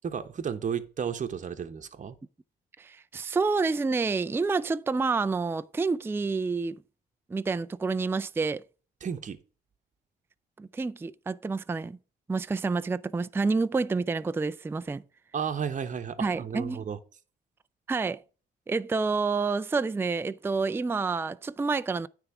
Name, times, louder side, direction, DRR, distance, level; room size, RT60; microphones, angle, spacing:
voice 1, 0.0-2.2 9.0-9.4 15.3-17.0, right 7 dB, 40° right, 1.0 m, -33 dB
voice 2, 2.8-6.8 7.3-8.6 10.6-12.0 12.3-15.0 16.2-16.8 17.9-18.2 18.7-22.1, right 4 dB, 10° right, 0.4 m, -28 dB
9.7 x 3.5 x 6.9 m
cardioid pair, 90°, 20 cm